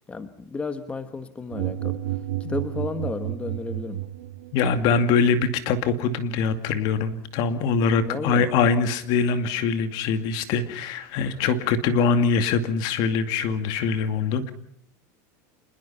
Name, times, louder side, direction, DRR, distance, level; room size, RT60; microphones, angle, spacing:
voice 1, 0.1-2.0 2.5-4.0 8.0-8.5, left 4 dB, 15° left, 10 dB, 1.2 m, -32 dB
sound 1, 1.5-4.7, right 14 dB, 75° right, 1.9 m, -31 dB
voice 2, 4.5-14.5, left 5 dB, 50° left, 10 dB, 2.3 m, -23 dB
26.5 x 21.0 x 5.8 m, 0.71 s
supercardioid pair, 150°, 9 cm